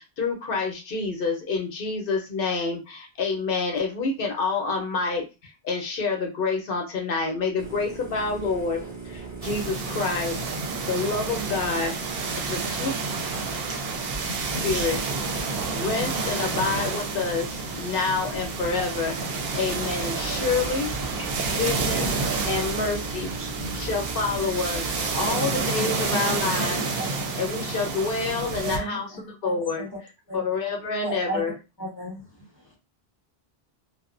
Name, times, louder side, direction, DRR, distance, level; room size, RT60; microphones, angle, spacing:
voice 1, 0.0-10.4 10.9-12.0 12.5-12.9 14.6-15.0 15.7-19.2 19.6-21.0 21.4-22.1 22.4-23.3 23.8-26.8 27.4-29.1 29.4-29.8 30.3-31.5, left 4 dB, 60° left, 3 dB, 0.9 m, -28 dB
sound 1, 7.6-25.3, right 4 dB, 10° right, 0.9 m, -40 dB
sound 2, 9.4-28.8, right 4 dB, 70° right, 0.7 m, -29 dB
voice 2, 12.4-13.2 13.6-13.8 14.1-15.0 15.8-16.8 18.1-18.2 23.1-23.9 25.9-26.1, equal, 40° right, 1 dB, 0.8 m, -41 dB
voice 3, 21.1-22.0 22.8-23.0 27.0-27.1 28.6-30.0 30.3-30.4 31.0-31.4 31.8-32.8, right 1 dB, 25° left, -2 dB, 0.6 m, -36 dB
2.5 x 2.0 x 2.5 m, 0.28 s
omnidirectional pair, 1.1 m